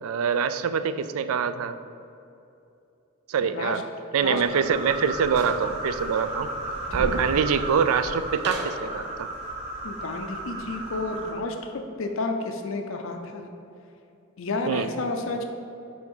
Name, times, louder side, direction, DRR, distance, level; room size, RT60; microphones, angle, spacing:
voice 1, 0.0-1.8 3.3-3.8 4.1-6.5 6.9-9.3 14.7-14.9, right 6 dB, 85° right, 12 dB, 0.4 m, -25 dB
voice 2, 3.4-3.8 4.2-4.4 7.0-7.3 9.8-13.5 14.4-15.4, left 3 dB, 70° left, 4 dB, 0.6 m, -31 dB
sound 1, 4.2-11.3, right 2 dB, 30° right, 1.2 m, -34 dB
sound 2, 5.3-5.6 6.1-6.2 8.4-8.9, right 2 dB, 50° right, 1.0 m, -35 dB
7.7 x 3.5 x 5.4 m, 2.8 s
head